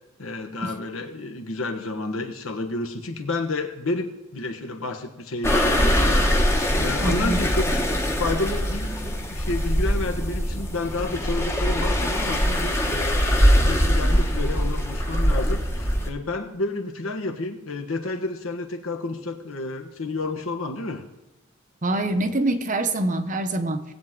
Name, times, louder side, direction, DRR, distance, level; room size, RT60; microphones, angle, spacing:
voice 1, 0.2-6.2 6.8-7.9 8.2-21.0, left 2 dB, 70° left, 4 dB, 1.4 m, -30 dB
sound 1, 5.4-16.1, equal, 10° left, 1.0 m, -22 dB
voice 2, 7.0-7.4 21.8-23.8, right 2 dB, 35° right, 8 dB, 0.8 m, -25 dB
19.0 x 7.9 x 3.8 m, 1.0 s
head